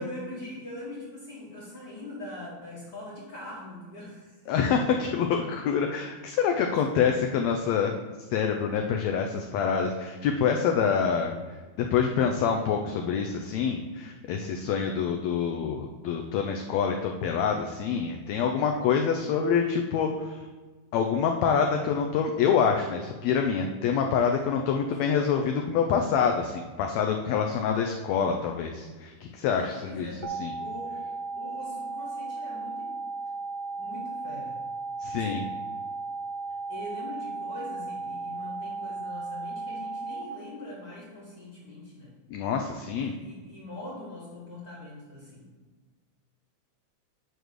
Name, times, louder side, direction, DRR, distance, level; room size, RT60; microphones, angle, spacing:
voice 1, 0.0-4.4 4.7-4.9 7.1-7.2 14.6-14.8 18.9-19.1 25.0-25.2 29.5-30.3 30.6-31.1 31.4-32.9 33.7-34.5 35.0-35.4 36.7-42.1 43.0-45.5, left 1 dB, 45° left, -7 dB, 1.5 m, -42 dB
voice 2, 4.5-7.9 8.3-11.3 11.9-20.4 20.9-30.5 35.0-35.4 42.3-43.1, left 6 dB, 85° left, 3 dB, 1.5 m, -26 dB
sound 1, 30.2-40.2, right 3 dB, 75° right, 2.3 m, -35 dB
9.0 x 3.1 x 6.4 m, 1.3 s
omnidirectional pair, 3.7 m